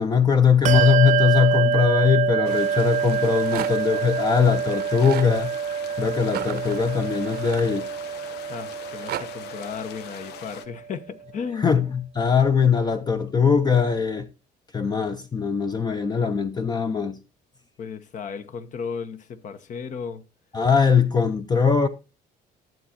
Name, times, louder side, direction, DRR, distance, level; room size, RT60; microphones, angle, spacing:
voice 1, 0.0-5.5 6.0-7.9 11.6-14.3 14.7-17.2 20.5-21.9, left 6 dB, 25° left, 0.6 m, -21 dB
Bell, 0.6-10.6, right 8 dB, 45° right, 0.5 m, -26 dB
sound 1, 2.4-10.7, left 9 dB, 85° left, 0.8 m, -42 dB
Rattle, 3.1-4.0 4.7-5.3 6.2-8.2 8.7-9.3, right 12 dB, 70° right, 0.8 m, -35 dB
voice 2, 8.5-11.8 17.8-20.2, left 6 dB, 50° left, 0.9 m, -35 dB
12.0 x 7.3 x 2.8 m
cardioid pair, 110°, 17 cm